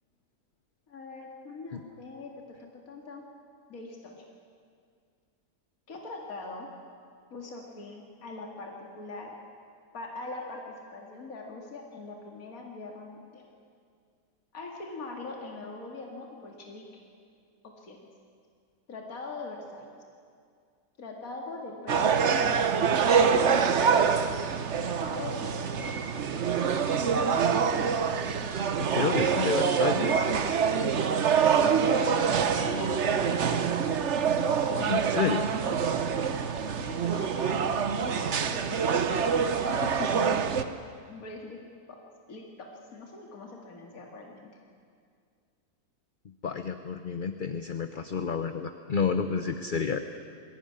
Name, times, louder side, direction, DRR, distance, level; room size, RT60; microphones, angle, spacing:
voice 1, 0.9-2.3 2.6-3.3 3.7-4.2 5.9-6.7 7.3-9.4 9.9-13.5 14.5-16.8 17.6-18.0 18.9-19.9 21.0-22.1 22.4-22.6 23.4-24.2 24.8-26.0 26.5-27.8 31.8-32.3 32.6-33.7 34.2-35.3 35.6-35.8 36.7-40.4 41.1-41.6 41.9-42.0 42.3-44.5, left 3 dB, 60° left, 0 dB, 2.6 m, -41 dB
sound 1, 21.9-40.6, right 6 dB, 50° right, 1.2 m, -25 dB
voice 2, 28.8-30.3 34.9-35.4 46.4-50.0, left 6 dB, 40° left, 8 dB, 0.8 m, -30 dB
22.0 x 16.5 x 9.8 m, 2.2 s
omnidirectional pair, 1.7 m